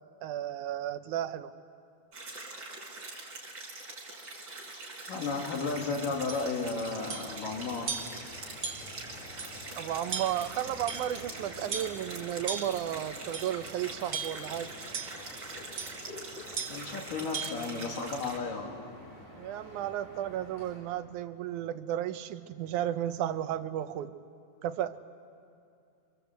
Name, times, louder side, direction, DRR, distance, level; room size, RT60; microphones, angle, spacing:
voice 1, 0.2-1.5 9.8-14.7 19.4-24.1 24.6-25.0, right 11 dB, 75° right, 11 dB, 2.2 m, -33 dB
sound 1, 2.1-18.4, right 2 dB, 35° right, 5.1 m, -44 dB
voice 2, 5.1-7.9 16.7-18.9, left 4 dB, 85° left, 1 dB, 4.3 m, -34 dB
sound 2, 5.2-20.8, left 1 dB, 60° left, 7.9 m, -50 dB
sound 3, 6.3-6.4 7.1-7.4 7.9-8.2 8.6-9.0 9.4-9.5 10.1-10.5 10.9-11.3 11.7-12.0 12.5-12.8 13.3-13.6 14.1-14.5 14.9-15.2 15.8-16.0 16.6-16.8 17.3-17.6, right 5 dB, 60° right, 1.0 m, -37 dB
28.0 x 26.5 x 8.0 m, 2.6 s
omnidirectional pair, 3.7 m